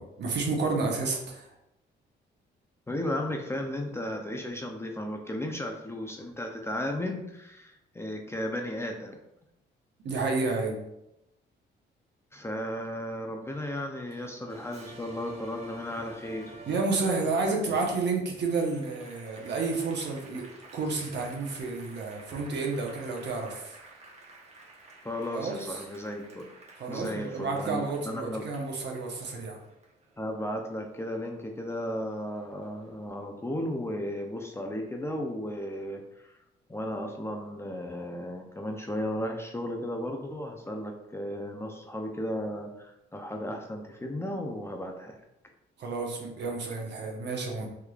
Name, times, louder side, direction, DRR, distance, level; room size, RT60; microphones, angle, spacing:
voice 1, 0.0-1.5 10.0-10.8 16.7-20.5 20.7-23.8 25.3-25.8 26.8-29.6 45.8-47.7, right 3 dB, 60° right, 1 dB, 0.9 m, -30 dB
voice 2, 2.9-9.2 12.3-16.5 25.0-26.5 26.9-28.4 30.2-36.0 36.7-45.2, left 1 dB, 15° left, 2 dB, 0.4 m, -35 dB
Applause, 14.5-31.3 31.7-32.9, right 2 dB, 35° right, 0.9 m, -51 dB
3.6 x 3.1 x 2.3 m, 0.85 s
cardioid pair, 90°, 20 cm